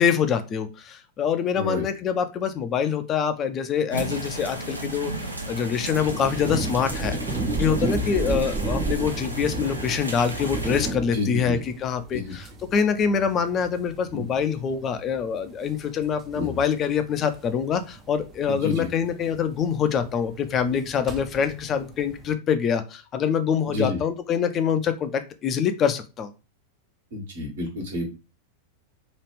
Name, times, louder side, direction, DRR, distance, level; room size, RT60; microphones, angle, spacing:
voice 1, 0.0-5.1 5.5-26.3, left 7 dB, 30° left, 9 dB, 0.4 m, -25 dB
voice 2, 1.5-1.8 8.3-8.4 11.1-11.6 12.1-12.3 14.1-14.2 16.3-16.6 18.5-18.9 23.7-24.0 27.1-28.1, left 2 dB, 60° right, 0 dB, 1.3 m, -29 dB
sound 1, 3.9-10.9, right 1 dB, 85° right, 0.6 m, -34 dB
sound 2, 5.9-22.3, right 2 dB, 25° right, 0.5 m, -33 dB
3.0 x 2.4 x 3.2 m, 0.30 s
figure-of-eight pair, 90°, 0 cm